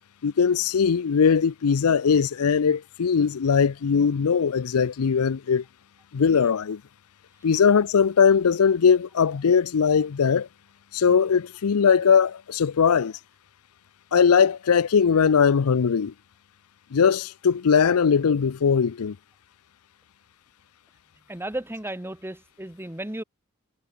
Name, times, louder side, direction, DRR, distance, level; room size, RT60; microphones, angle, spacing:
voice 1, 0.2-5.6 6.1-6.8 7.4-10.5 10.9-13.1 14.1-16.1 16.9-19.1, left 6 dB, 85° left, 0.5 m, -20 dB
voice 2, 21.3-23.2, right 1 dB, 10° right, 1.6 m, -34 dB
head